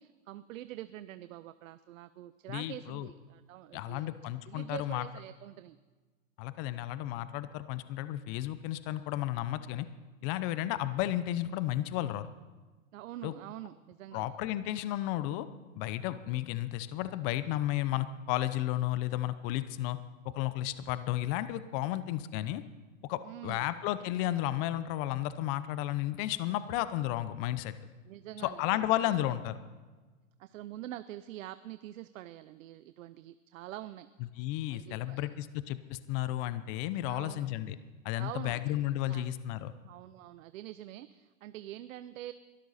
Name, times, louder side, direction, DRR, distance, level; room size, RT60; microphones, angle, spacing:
voice 1, 0.0-4.1 4.5-5.8 12.9-14.3 23.2-23.7 28.1-28.8 30.4-34.1 34.7-35.3 37.0-37.5 38.2-38.8 39.1-39.3 39.8-42.3, right 14 dB, 75° right, 13 dB, 0.7 m, -45 dB
voice 2, 2.5-3.1 3.7-5.1 6.4-9.9 10.2-12.3 13.2-13.3 14.1-15.5 15.8-20.0 20.2-22.6 23.0-27.7 28.4-29.6 34.4-37.8 38.0-39.7, left 14 dB, 45° left, 13 dB, 0.8 m, -33 dB
22.5 x 13.0 x 4.2 m, 1.3 s
supercardioid pair, 135°, 40 cm